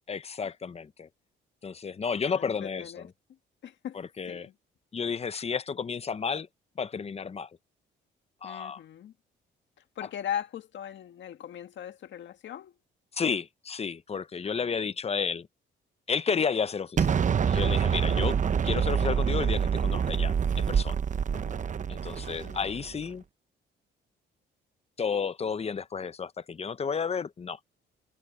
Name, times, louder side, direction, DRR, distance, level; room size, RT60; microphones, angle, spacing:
voice 1, 0.1-1.1 1.6-3.1 3.9-4.5 4.9-6.5 6.8-7.5 8.4-8.8 13.1-15.5 16.1-17.2 17.5-18.4 18.6-21.0 21.9-23.2 25.0-27.6, left 6 dB, 30° left, 0.8 m, -32 dB
voice 2, 2.1-3.1 3.6-4.0 4.3-4.5 8.4-9.1 10.0-12.7 14.4-14.8 18.1-18.4 21.3-21.6 22.4-22.7, left 10 dB, 70° left, 1.9 m, -39 dB
Explosion, 17.0-23.0, right 7 dB, 40° right, 0.8 m, -26 dB
cardioid pair, 90°, 20 cm